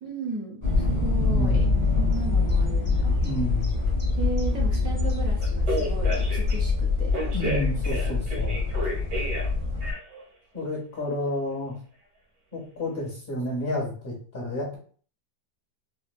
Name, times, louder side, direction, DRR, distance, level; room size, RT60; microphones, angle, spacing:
voice 1, 0.0-1.6 2.0-3.2 4.2-7.1 7.4-7.7 8.1-8.2, right 3 dB, 65° right, -1 dB, 1.0 m, -35 dB
sound 1, 0.6-9.9, left 3 dB, 15° left, 0.7 m, -24 dB
voice 2, 1.1-1.8 3.2-3.7 7.3-8.6 10.5-11.7 12.5-14.8, left 1 dB, 40° left, -5 dB, 1.4 m, -30 dB
Telephone, 5.4-6.5 7.1-9.5 9.8-10.2, right 1 dB, 85° right, 1.8 m, -31 dB
4.1 x 2.1 x 2.2 m, 0.43 s
omnidirectional pair, 1.8 m